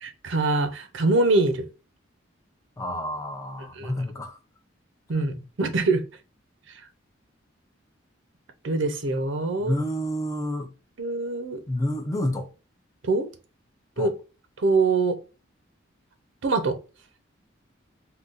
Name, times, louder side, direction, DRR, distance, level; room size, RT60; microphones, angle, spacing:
voice 1, 0.0-1.7 3.8-4.0 5.1-6.0 8.6-9.8 11.0-11.6 13.0-13.3 14.0-14.1 14.6-15.2 16.4-16.8, right 3 dB, 70° right, 0.6 m, -24 dB
voice 2, 2.8-4.4 9.6-10.7 11.7-12.5 14.0-14.1, left 1 dB, 15° left, 0.4 m, -29 dB
3.8 x 2.3 x 2.4 m
head